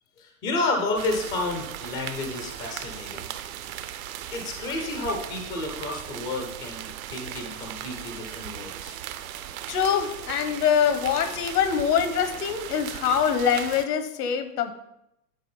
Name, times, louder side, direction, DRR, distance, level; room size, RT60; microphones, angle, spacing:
voice 1, 0.2-3.3 4.3-9.0, left 2 dB, 10° left, 0.4 m, -31 dB
sound 1, 0.9-13.8, right 11 dB, 60° right, 0.7 m, -38 dB
voice 2, 9.7-14.7, left 8 dB, 75° left, 1.1 m, -24 dB
9.4 x 4.0 x 5.4 m
supercardioid pair, 150°, 47 cm